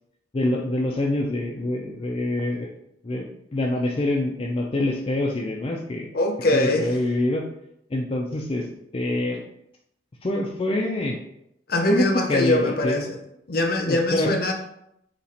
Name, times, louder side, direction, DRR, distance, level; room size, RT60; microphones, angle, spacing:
voice 1, 0.3-2.7 3.0-3.3 3.5-6.1 6.5-7.4 7.9-8.6 8.9-9.4 10.2-11.2 11.9-13.0 13.9-14.3, left 1 dB, 30° left, -1 dB, 0.4 m, -25 dB
voice 2, 6.1-6.9 11.7-13.2 13.5-14.5, left 1 dB, 55° left, 3 dB, 0.7 m, -22 dB
4.2 x 2.9 x 4.2 m, 0.79 s
head